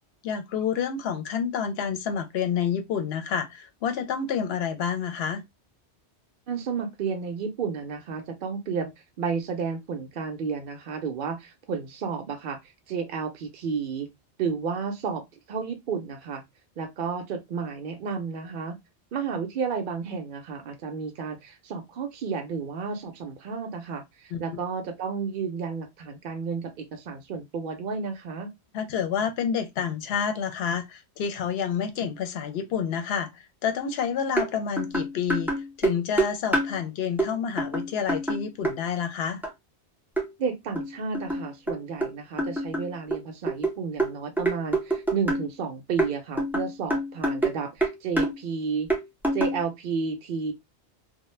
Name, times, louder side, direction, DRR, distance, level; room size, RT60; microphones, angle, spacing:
voice 1, 0.2-5.4 24.3-24.4 28.7-35.5 35.8-39.4, left 7 dB, 70° left, 0.8 m, -29 dB
voice 2, 6.5-8.9 9.2-14.1 14.4-16.4 16.8-18.8 19.1-28.5 40.4-48.9 49.3-50.5, right 5 dB, 60° right, 0.6 m, -32 dB
sound 1, 34.4-34.5 34.8-36.7 37.2-37.3 37.6-38.8 39.4-39.5 40.2-40.3 40.8-42.1 42.4-45.5 46.0-47.6 47.8-48.3 48.9-49.6, right 1 dB, 5° right, 0.3 m, -26 dB
2.3 x 2.1 x 3.1 m
omnidirectional pair, 1.2 m